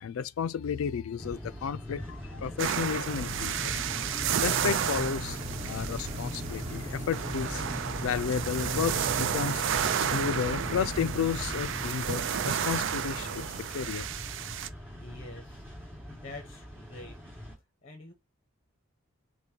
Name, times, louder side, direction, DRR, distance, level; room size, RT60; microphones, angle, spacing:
voice 1, 0.0-3.8 4.4-7.7 8.0-9.6 10.0-14.1, left 7 dB, 85° left, 0.4 m, -32 dB
sound 1, 1.2-17.6, equal, 10° right, 1.9 m, -41 dB
sound 2, 2.6-14.7, right 9 dB, 60° right, 0.3 m, -32 dB
sound 3, 3.1-11.9, equal, 30° right, 1.2 m, -39 dB
voice 2, 15.0-15.7 16.1-17.2 17.8-18.1, left 2 dB, 35° left, 0.9 m, -46 dB
5.1 x 2.2 x 2.8 m
head